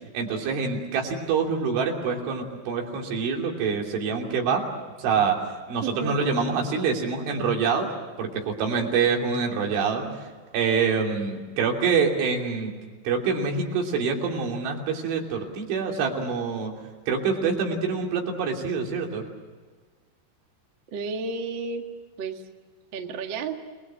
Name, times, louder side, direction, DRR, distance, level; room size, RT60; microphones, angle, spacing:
voice 1, 0.1-4.7 5.0-7.9 8.2-10.3 10.5-12.7 13.1-16.7 17.1-19.3, right 5 dB, 85° right, 1 dB, 5.4 m, -26 dB
voice 2, 5.8-6.2 10.0-10.2 20.9-21.8 22.2-22.4 22.9-23.6, right 4 dB, 60° right, 3 dB, 1.2 m, -32 dB
29.5 x 20.5 x 7.6 m, 1.4 s
omnidirectional pair, 5.3 m